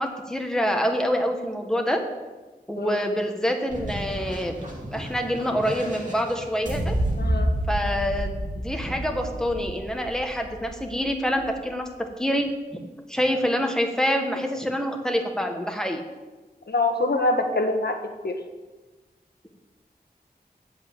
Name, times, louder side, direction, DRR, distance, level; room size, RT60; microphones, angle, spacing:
voice 1, 0.0-2.0 2.7-4.6 4.9-7.0 7.7-12.5 13.1-16.0, equal, 5° left, 3 dB, 1.6 m, -26 dB
voice 2, 2.8-3.1 7.2-7.5 16.7-18.0 18.2-18.3, left 2 dB, 80° left, 4 dB, 1.4 m, -24 dB
sound 1, 3.7-11.7, right 1 dB, 50° right, 2.4 m, -30 dB
8.3 x 8.0 x 8.5 m, 1.2 s
wide cardioid pair, 65°, 17 cm